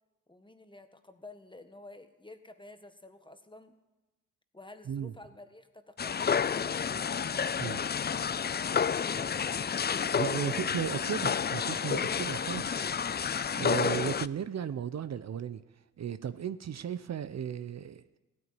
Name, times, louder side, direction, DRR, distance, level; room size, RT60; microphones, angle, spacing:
voice 1, 0.3-3.8 4.5-7.0 7.8-9.8 10.2-10.7, left 2 dB, 15° left, 9 dB, 1.7 m, -51 dB
sound 1, 6.0-14.3, left 7 dB, 30° left, 0.5 m, -30 dB
voice 2, 10.2-12.8 13.6-15.6 16.0-18.0, right 9 dB, 55° right, 13 dB, 0.8 m, -35 dB
16.0 x 9.4 x 8.0 m, 1.1 s
supercardioid pair, 45°, 32 cm